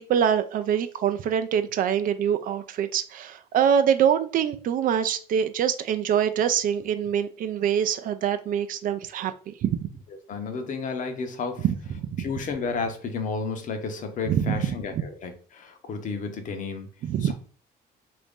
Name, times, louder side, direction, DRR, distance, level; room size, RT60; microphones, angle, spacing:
voice 1, 0.0-9.9 11.6-12.3 14.3-15.0 17.0-17.3, right 8 dB, 55° right, 10 dB, 0.4 m, -25 dB
voice 2, 10.3-11.6 12.2-16.9 17.2-17.3, left 4 dB, 50° left, 6 dB, 0.7 m, -32 dB
2.9 x 2.6 x 3.5 m, 0.42 s
cardioid pair, 110°, 17 cm